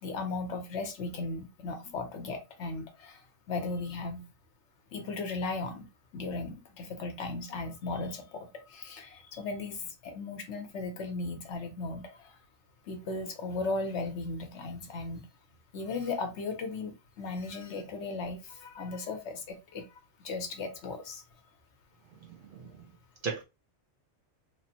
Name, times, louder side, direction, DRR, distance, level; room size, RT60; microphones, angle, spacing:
voice 1, 0.0-4.2 4.9-5.9 6.1-12.4 12.9-15.2 15.7-19.9 20.2-21.2, left 3 dB, 75° left, 1.0 m, -36 dB
voice 2, 22.2-22.8 23.2-23.4, right 5 dB, 55° right, 0.7 m, -37 dB
3.1 x 2.0 x 2.7 m
omnidirectional pair, 1.2 m